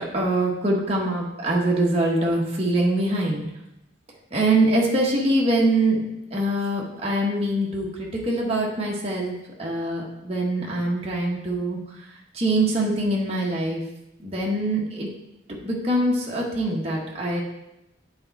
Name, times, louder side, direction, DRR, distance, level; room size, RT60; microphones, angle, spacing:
voice 1, 0.0-3.4 4.3-12.1 12.3-13.8 14.2-15.1 15.5-17.4, right 1 dB, 30° right, -3 dB, 1.2 m, -24 dB
8.7 x 4.4 x 4.1 m, 0.87 s
head